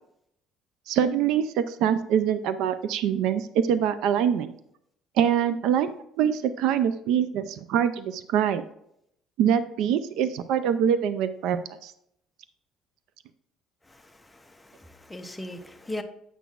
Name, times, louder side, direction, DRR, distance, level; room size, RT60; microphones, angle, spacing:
voice 1, 0.9-4.5 5.2-5.9 6.2-8.6 9.4-11.6 11.8-11.9, right 9 dB, 75° right, 12 dB, 0.4 m, -24 dB
voice 2, 13.9-16.0, left 1 dB, 10° left, 6 dB, 0.6 m, -39 dB
8.1 x 5.9 x 2.4 m, 0.73 s
cardioid pair, 120°, 0 cm